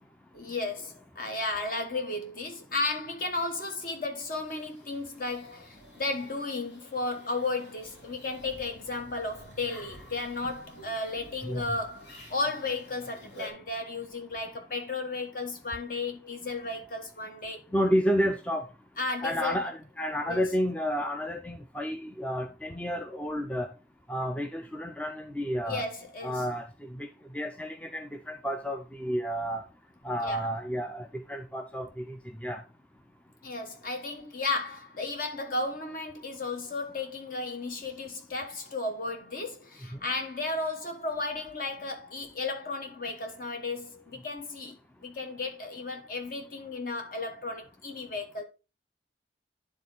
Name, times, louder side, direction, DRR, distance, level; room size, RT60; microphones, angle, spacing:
voice 1, 0.3-17.6 19.0-19.6 20.3-20.4 25.7-26.5 30.2-30.5 33.4-48.4, left 3 dB, 50° left, 1.2 m, -34 dB
sound 1, 4.5-13.5, left 1 dB, 70° left, 2.6 m, -50 dB
voice 2, 11.4-11.8 17.7-18.6 19.2-23.7 24.1-25.9 26.2-26.6 26.9-27.1 27.3-29.6 30.0-32.2 32.4-32.6, equal, 5° left, 0.4 m, -30 dB
9.5 x 3.7 x 3.9 m
head